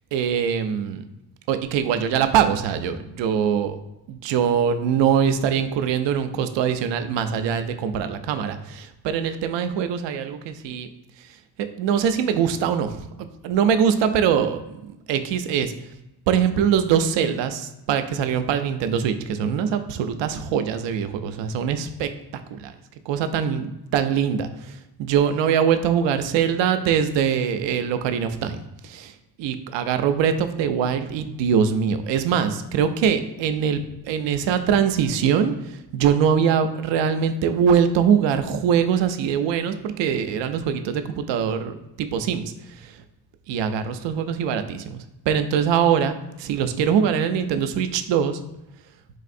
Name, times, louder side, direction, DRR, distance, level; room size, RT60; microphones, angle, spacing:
voice 1, 0.1-1.0 1.5-3.8 4.1-10.9 11.2-11.4 11.8-15.7 16.3-22.7 23.1-43.0 43.5-48.4, right 7 dB, 65° right, 9 dB, 0.5 m, -23 dB
4.1 x 2.5 x 2.5 m, 0.91 s
supercardioid pair, 65°, 48 cm